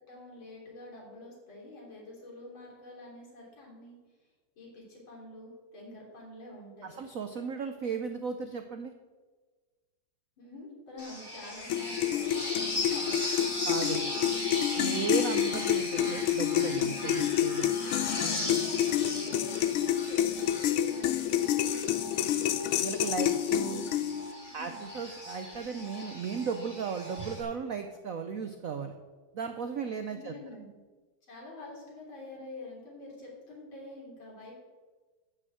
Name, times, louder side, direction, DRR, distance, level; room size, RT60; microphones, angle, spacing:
voice 1, 0.1-4.0 4.6-7.0 10.4-14.9 17.3-22.5 24.5-24.9 29.7-30.7 31.3-34.5, left 2 dB, 65° left, -3 dB, 4.2 m, -47 dB
voice 2, 6.8-8.9 13.6-14.0 14.8-17.7 22.8-23.8 24.5-28.9 29.3-30.3, right 6 dB, 75° right, 6 dB, 0.7 m, -35 dB
sound 1, 11.0-27.4, left 1 dB, 20° left, 3.0 m, -38 dB
sound 2, 11.7-24.3, left 11 dB, 85° left, 1.5 m, -29 dB
12.0 x 6.3 x 7.9 m, 1.4 s
omnidirectional pair, 2.4 m